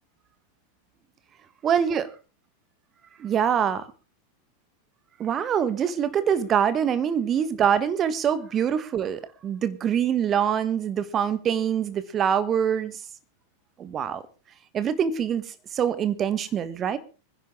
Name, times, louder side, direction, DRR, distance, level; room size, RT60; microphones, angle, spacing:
voice 1, 1.6-2.1 3.2-3.9 5.2-13.0 13.8-14.2 14.7-15.5 15.7-17.0, right 8 dB, 25° right, 1.4 m, -24 dB
24.0 x 10.5 x 3.8 m
figure-of-eight pair, 90°, 0 cm